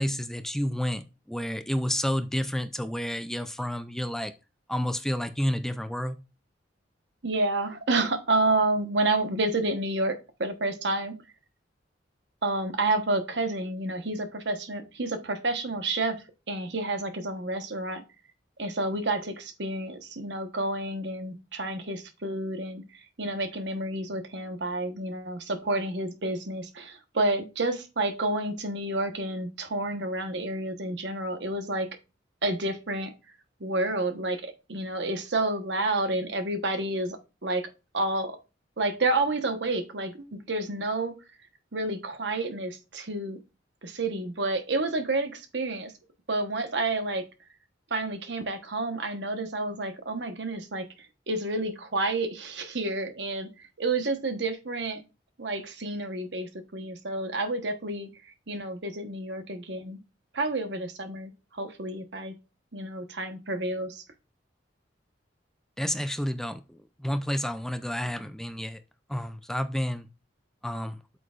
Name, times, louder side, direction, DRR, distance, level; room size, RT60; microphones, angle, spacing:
voice 1, 0.0-4.3 4.7-6.2 65.8-68.8 69.1-70.1 70.6-71.0, equal, 5° left, 0.3 m, -30 dB
voice 2, 7.2-11.1 12.4-16.2 16.5-18.0 18.6-31.9 32.4-33.1 33.6-37.7 37.9-38.4 38.8-41.1 41.7-43.4 43.8-45.9 46.3-47.2 47.9-50.8 51.3-55.0 55.4-60.0 60.3-62.3 62.7-64.0, right 2 dB, 65° right, 1.1 m, -29 dB
8.4 x 6.7 x 2.4 m
head